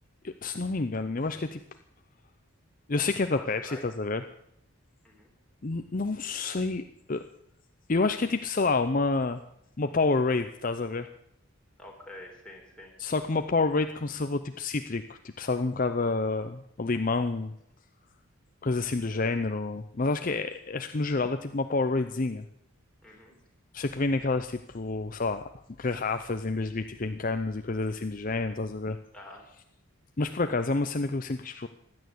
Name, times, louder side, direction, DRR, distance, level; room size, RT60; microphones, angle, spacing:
voice 1, 0.2-1.6 2.9-4.2 5.6-7.2 7.9-9.4 9.8-11.1 13.0-17.5 18.6-22.4 23.7-25.4 25.8-29.0 30.2-31.7, left 3 dB, 40° left, 8 dB, 0.6 m, -28 dB
voice 2, 3.3-3.8 5.0-5.3 11.8-12.9 23.0-23.3 29.1-29.4, left 1 dB, 5° left, -2 dB, 4.0 m, -47 dB
16.0 x 10.5 x 7.8 m, 0.75 s
head